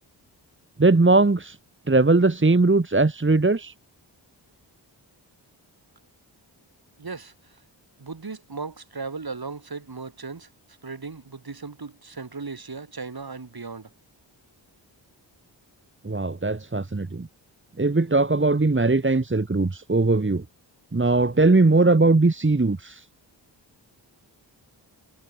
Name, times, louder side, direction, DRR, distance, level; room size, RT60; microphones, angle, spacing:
voice 1, 0.8-1.6 1.9-3.7 16.0-17.3 17.8-20.4 20.9-23.0, right 3 dB, 25° right, 2.1 m, -20 dB
voice 2, 7.0-7.3 8.0-10.5 10.8-13.9, right 4 dB, 50° right, 7.6 m, -36 dB
cardioid pair, 40°, 46 cm